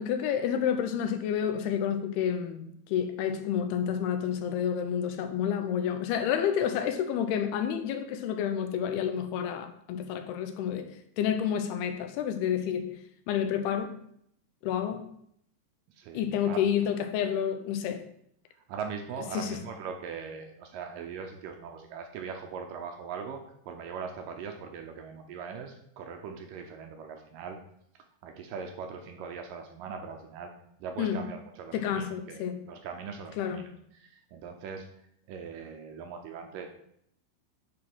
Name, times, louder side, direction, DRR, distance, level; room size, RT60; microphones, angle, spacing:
voice 1, 0.0-13.0 13.3-13.9 14.6-15.0 16.1-18.0 19.3-19.6 31.0-31.2 31.7-32.6 33.4-33.7, left 8 dB, 80° left, 2.7 m, -29 dB
voice 2, 16.0-16.6 18.7-27.6 28.2-30.5 30.8-34.9 35.3-36.7, right 6 dB, 75° right, 2.0 m, -40 dB
9.7 x 3.8 x 6.1 m
omnidirectional pair, 4.7 m